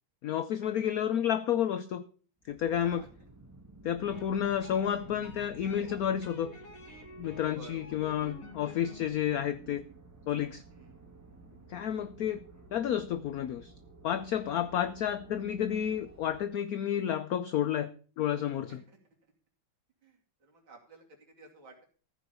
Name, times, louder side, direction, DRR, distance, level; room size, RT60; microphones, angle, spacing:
voice 1, 0.2-2.0 2.5-3.0 3.8-6.5 7.2-9.8 10.3-10.6 11.7-12.4 12.7-13.7 14.0-18.8, left 10 dB, 65° left, 12 dB, 0.9 m, -31 dB
sound 1, 2.4-16.5, right 2 dB, 10° right, 1.3 m, -55 dB
sound 2, 4.0-9.1, left 3 dB, 45° left, 2.3 m, -49 dB
voice 2, 7.5-8.1 10.7-11.0 14.6-14.7 18.7-19.0 20.0-21.9, right 4 dB, 80° right, 0 dB, 3.3 m, -54 dB
14.5 x 5.2 x 7.0 m, 0.41 s
omnidirectional pair, 2.1 m